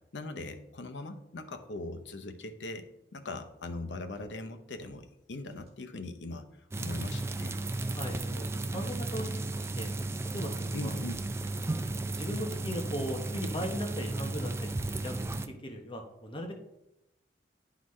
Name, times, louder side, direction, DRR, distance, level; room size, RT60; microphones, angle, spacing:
voice 1, 0.1-7.6 10.7-11.3, left 2 dB, 85° left, 7 dB, 0.7 m, -40 dB
sound 1, 4.1-4.3 4.8-5.0 5.5-5.7 7.0-7.2 7.6-7.7 8.2-8.5 8.8-9.0 9.4-9.6 10.9-11.4 11.8-12.0 12.5-12.8 13.3-13.6 14.1-14.3, equal, 35° right, 1.8 m, -58 dB
sound 2, 6.7-15.5, right 2 dB, 15° right, 0.3 m, -34 dB
voice 2, 7.9-9.9 10.3-10.9 11.4-16.5, equal, 30° left, 3 dB, 0.8 m, -39 dB
11.0 x 4.0 x 3.1 m, 0.88 s
head